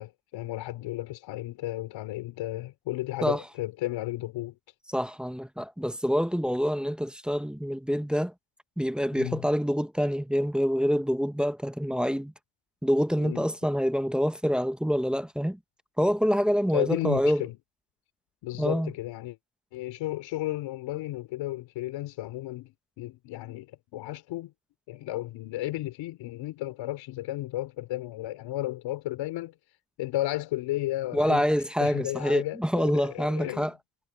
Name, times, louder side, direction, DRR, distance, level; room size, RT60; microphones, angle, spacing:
voice 1, 0.0-4.6 9.2-9.4 13.2-13.5 16.7-17.5 18.4-19.4 19.7-22.7 23.0-24.5 24.9-29.5 30.0-31.5 31.8-33.7, left 15 dB, 90° left, 4.2 m, -33 dB
voice 2, 4.9-8.3 8.8-12.3 12.8-15.6 16.0-17.4 18.6-18.9 31.1-33.7, equal, ahead, 0.7 m, -26 dB
cardioid pair, 135°, 44 cm